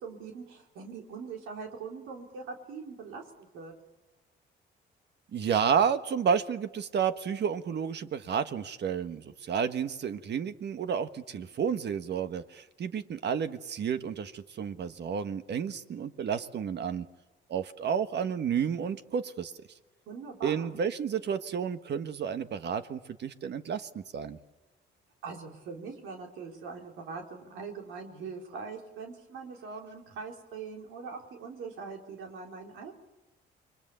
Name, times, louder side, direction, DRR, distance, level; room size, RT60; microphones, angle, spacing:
voice 1, 0.0-3.7 20.1-20.7 25.2-32.9, right 5 dB, 90° right, 2 dB, 4.0 m, -42 dB
voice 2, 5.3-17.1 17.5-19.5 20.4-24.4, right 7 dB, 60° right, 10 dB, 1.4 m, -31 dB
29.0 x 22.5 x 6.9 m, 1.1 s
cardioid pair, 90°, 20 cm